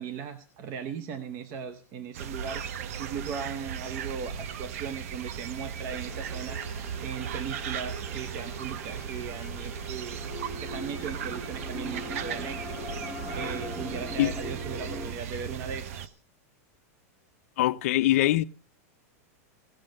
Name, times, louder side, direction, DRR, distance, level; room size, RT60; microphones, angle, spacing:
voice 1, 0.0-10.2 10.6-16.1, right 6 dB, 30° right, 0.8 m, -38 dB
sound 1, 2.1-16.1, right 8 dB, 65° right, 0.8 m, -37 dB
sound 2, 6.1-15.1, left 1 dB, ahead, 1.0 m, -41 dB
voice 2, 17.6-18.4, left 15 dB, 60° left, 0.5 m, -23 dB
17.0 x 6.3 x 6.5 m
supercardioid pair, 170°, 8 cm